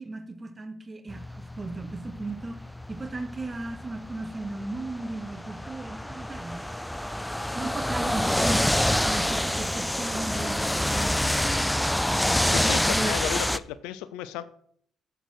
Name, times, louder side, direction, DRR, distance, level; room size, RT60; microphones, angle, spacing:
voice 1, 0.0-6.7 7.6-12.4 12.9-13.2, right 2 dB, 30° right, 10 dB, 1.1 m, -36 dB
sound 1, 1.1-13.6, left 1 dB, 5° left, 0.5 m, -27 dB
voice 2, 12.4-14.4, left 12 dB, 75° left, 15 dB, 0.4 m, -34 dB
9.6 x 8.0 x 4.5 m, 0.64 s
hypercardioid pair, 50°, 0 cm